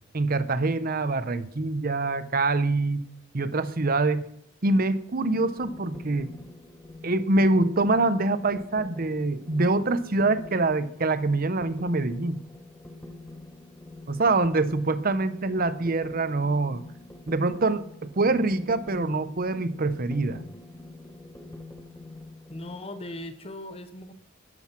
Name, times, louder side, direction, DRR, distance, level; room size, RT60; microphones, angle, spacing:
voice 1, 0.1-3.1 3.3-4.3 4.6-6.3 7.0-12.4 14.1-16.8 17.3-17.9 18.2-20.4, right 2 dB, 45° right, 14 dB, 0.8 m, -25 dB
sound 1, 5.3-22.8, left 2 dB, 10° left, 1.1 m, -45 dB
voice 2, 22.5-24.1, left 1 dB, 30° left, 10 dB, 1.0 m, -38 dB
12.0 x 10.5 x 6.0 m, 0.71 s
head